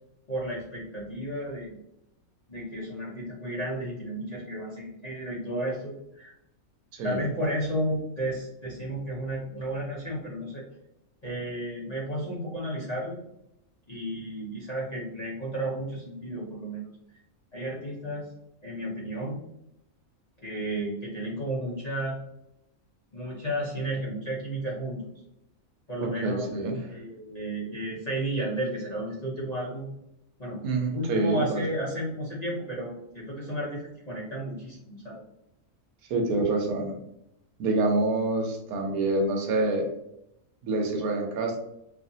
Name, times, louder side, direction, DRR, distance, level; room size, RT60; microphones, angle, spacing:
voice 1, 0.3-1.8 2.5-6.3 7.0-10.6 11.2-13.2 13.9-16.9 17.5-18.3 18.6-19.4 20.4-22.2 23.1-25.1 25.9-26.5 26.9-29.9 30.4-35.2, right 1 dB, 35° left, -6 dB, 0.7 m, -33 dB
voice 2, 6.9-7.2 26.0-26.9 30.6-31.6 36.1-36.9 37.6-39.9 40.6-41.6, right 2 dB, 90° right, 2 dB, 1.1 m, -27 dB
2.7 x 2.4 x 2.6 m, 0.82 s
omnidirectional pair, 1.5 m